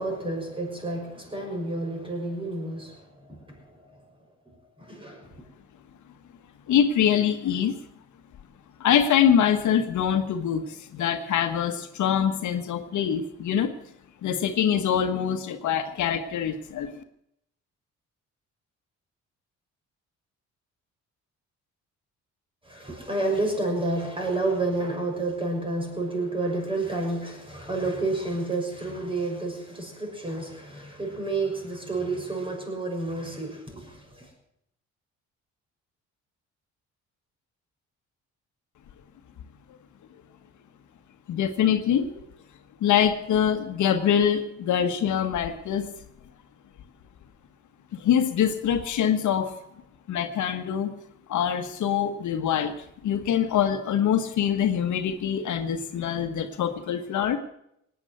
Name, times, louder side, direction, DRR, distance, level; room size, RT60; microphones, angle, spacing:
voice 1, 0.0-3.9 4.8-5.3 22.7-34.3, right 2 dB, 15° right, 2 dB, 6.1 m, -30 dB
voice 2, 6.7-7.7 8.8-13.7 14.2-17.0 41.3-42.2 42.8-45.9 47.9-49.5 50.1-50.9 51.3-52.7 53.0-57.4, left 9 dB, 75° left, 8 dB, 1.4 m, -24 dB
18.0 x 9.4 x 7.9 m, 0.76 s
cardioid pair, 90°, 30 cm